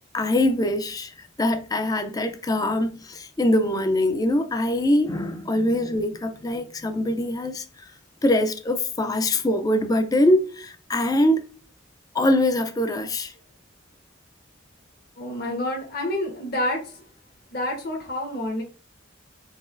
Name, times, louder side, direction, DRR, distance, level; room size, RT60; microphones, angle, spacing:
voice 1, 0.1-7.9 8.2-11.5 12.1-13.3, left 1 dB, 20° left, 0.4 m, -23 dB
voice 2, 15.2-17.0 17.5-18.6, left 1 dB, 50° left, 1.0 m, -28 dB
4.0 x 3.8 x 2.4 m
head